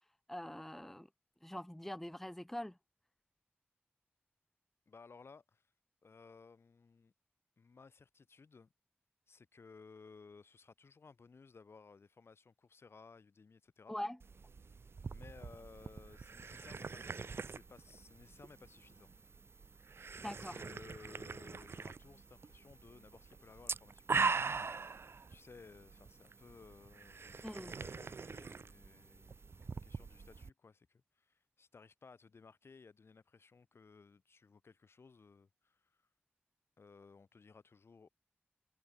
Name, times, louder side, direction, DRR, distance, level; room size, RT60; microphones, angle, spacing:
voice 1, 0.3-1.1 1.4-2.7 13.9-14.2 20.2-20.5 27.4-27.7, left 1 dB, 5° left, 1.0 m, -43 dB
voice 2, 4.9-5.7 6.0-7.1 7.6-8.7 9.3-14.0 15.1-19.1 20.2-24.0 25.3-36.1 36.8-38.1, left 4 dB, 75° left, 7.0 m, -59 dB
sound 1, 14.2-30.5, right 4 dB, 70° right, 1.7 m, -42 dB
wide cardioid pair, 105°, 4 cm